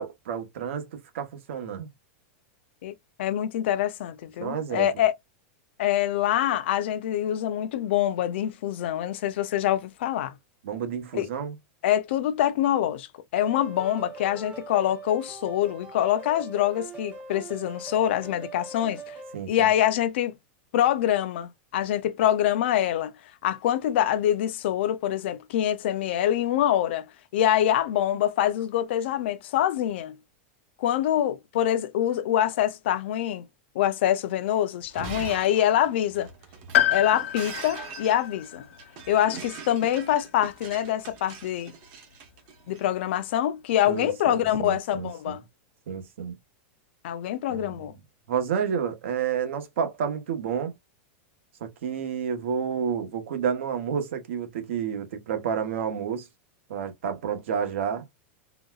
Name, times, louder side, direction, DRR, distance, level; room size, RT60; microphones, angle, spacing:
voice 1, 0.0-1.9 4.4-4.9 10.6-11.5 19.3-19.7 43.9-45.4 45.9-46.4 47.5-47.9 48.3-50.7 51.6-56.3 56.7-58.0, right 7 dB, 75° right, 1.0 m, -30 dB
voice 2, 3.2-5.1 5.8-10.3 11.1-11.3 11.8-19.2 19.5-20.3 20.7-23.1 23.4-27.1 27.3-30.1 30.8-33.4 33.7-36.3 36.9-38.7 39.1-41.7 42.7-45.4 47.0-47.9, left 11 dB, 60° left, 0.5 m, -25 dB
sound 1, 13.4-19.3, right 3 dB, 15° right, 0.9 m, -42 dB
Shatter, 34.8-42.8, right 6 dB, 40° right, 0.9 m, -42 dB
Piano, 36.7-40.6 40.9-41.0 42.1-42.2, left 12 dB, 90° left, 0.8 m, -29 dB
3.9 x 2.2 x 2.3 m
supercardioid pair, 170°, 7 cm